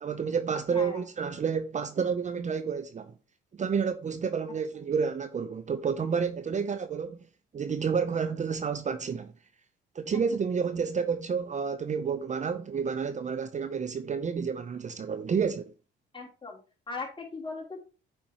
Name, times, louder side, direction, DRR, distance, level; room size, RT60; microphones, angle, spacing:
voice 1, 0.0-3.1 3.5-7.2 7.5-9.3 9.9-15.7, right 6 dB, 35° right, 0.6 m, -30 dB
voice 2, 0.7-1.0 10.1-10.2 16.1-16.6 16.9-17.8, left 3 dB, 25° left, 3.4 m, -38 dB
8.7 x 5.1 x 3.0 m
supercardioid pair, 75°, 20 cm